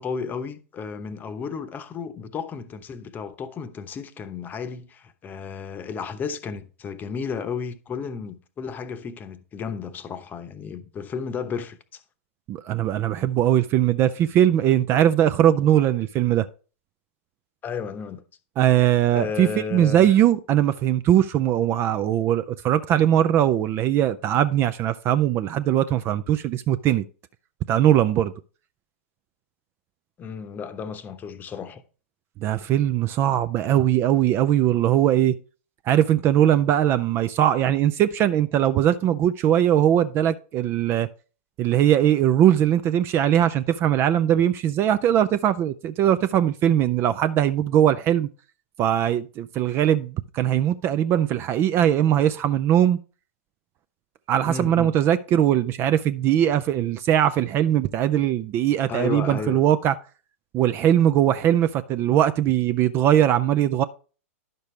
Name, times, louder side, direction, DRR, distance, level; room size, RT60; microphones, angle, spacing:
voice 1, 0.0-12.0 17.6-18.2 19.1-20.1 30.2-31.8 54.5-54.9 58.9-59.6, left 6 dB, 25° left, 0.9 m, -33 dB
voice 2, 12.5-16.5 18.6-27.0 27.7-28.3 32.4-35.3 35.9-41.1 41.6-48.3 48.8-53.0 54.3-59.9 60.5-63.8, right 11 dB, 30° right, 0.4 m, -20 dB
10.5 x 6.6 x 3.3 m
hypercardioid pair, 110°, 8 cm